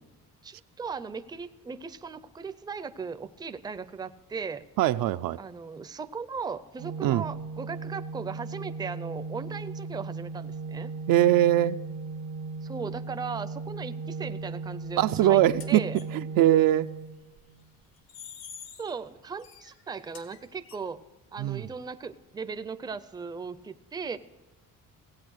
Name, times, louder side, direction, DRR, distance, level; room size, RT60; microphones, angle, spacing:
voice 1, 0.4-4.6 5.4-10.9 12.6-15.4 15.7-16.0 18.8-21.0 21.3-24.2, right 5 dB, 10° right, 0.5 m, -37 dB
voice 2, 4.8-5.4 7.0-7.2 11.1-11.8 15.0-16.9 21.4-21.7, right 13 dB, 75° right, 0.5 m, -22 dB
Organ, 6.8-17.7, right 3 dB, 90° right, 0.9 m, -37 dB
sound 1, 15.2-15.3 15.6-16.1 18.0-19.0 19.4-20.8, left 7 dB, 85° left, 1.6 m, -46 dB
16.5 x 8.6 x 6.3 m
cardioid pair, 125°, 34 cm